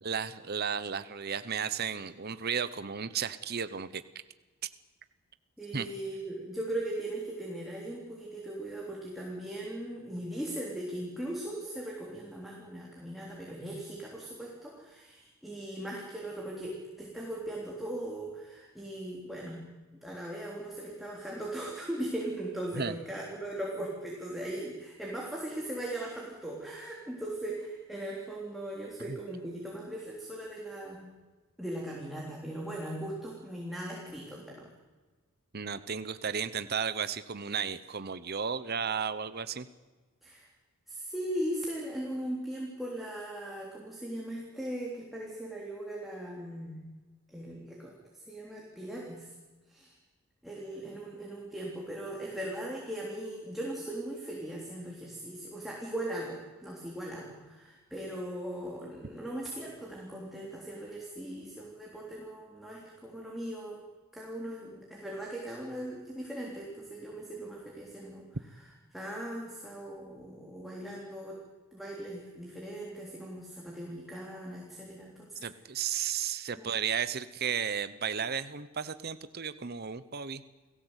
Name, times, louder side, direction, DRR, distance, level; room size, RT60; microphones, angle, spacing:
voice 1, 0.0-4.0 5.7-5.9 22.7-22.9 29.1-29.2 35.5-39.7 75.4-80.4, right 7 dB, 45° right, 13 dB, 0.8 m, -34 dB
voice 2, 5.6-19.6 20.0-31.1 31.6-34.7 40.2-40.5 40.9-46.9 47.3-47.9 48.3-49.3 49.7-49.9 50.4-63.8 64.1-68.3 68.9-71.4 71.7-75.4 76.6-76.7, right 1 dB, ahead, -3 dB, 3.4 m, -39 dB
29.5 x 17.5 x 8.1 m, 1.3 s
head